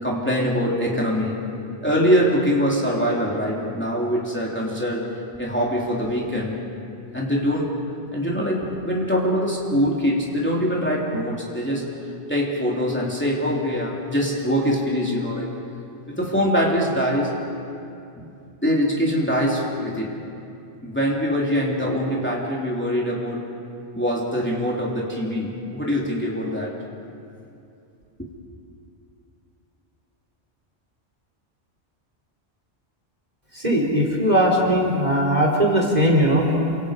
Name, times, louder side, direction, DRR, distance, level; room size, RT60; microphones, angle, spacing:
voice 1, 0.0-1.4 1.8-5.1 5.4-6.6 7.1-7.7 8.1-15.5 16.1-17.3 18.2-18.3 18.6-20.1 20.8-23.4 23.9-26.7 28.2-28.3, equal, 10° left, -4 dB, 3.2 m, -23 dB
voice 2, 33.5-36.5, equal, 40° right, -1 dB, 3.7 m, -19 dB
30.0 x 26.0 x 5.1 m, 2.6 s
omnidirectional pair, 1.1 m